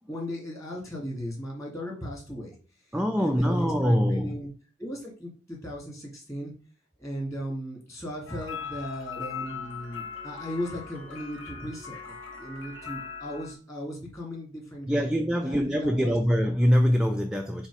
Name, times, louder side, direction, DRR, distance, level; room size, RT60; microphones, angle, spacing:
voice 1, 0.1-2.6 3.2-4.5 4.8-6.5 7.0-16.2, equal, 15° left, 2.2 m, -37 dB
voice 2, 2.9-4.4 14.9-17.7, equal, 5° right, 0.4 m, -24 dB
sound 1, 8.3-13.5, left 6 dB, 85° left, 1.3 m, -39 dB
7.3 x 2.8 x 4.8 m
head